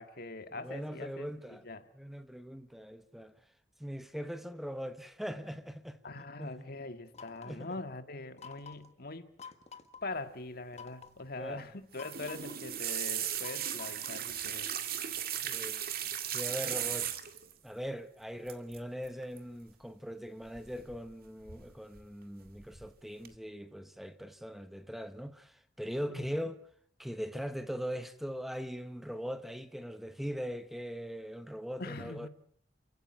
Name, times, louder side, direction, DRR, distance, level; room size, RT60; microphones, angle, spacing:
voice 1, 0.0-1.9 6.0-9.3 10.0-14.7 26.1-26.5 31.8-32.3, left 2 dB, 55° left, 1.9 m, -43 dB
voice 2, 0.5-1.6 1.9-3.3 3.8-6.0 6.4-6.7 7.4-7.7 11.4-11.7 15.4-15.8 16.3-17.1 17.6-26.6 27.0-32.3, equal, ahead, 1.0 m, -40 dB
sound 1, 7.1-7.7 8.4-8.9 9.4-10.0 10.7-11.2 12.0-12.6 13.4-14.3, left 6 dB, 40° left, 1.6 m, -50 dB
sound 2, 11.9-17.5 18.5-18.8 19.0-19.4 20.6-21.1 21.5-22.0 22.5-22.9 23.3-23.4, right 10 dB, 55° right, 2.1 m, -37 dB
29.0 x 16.0 x 9.0 m
head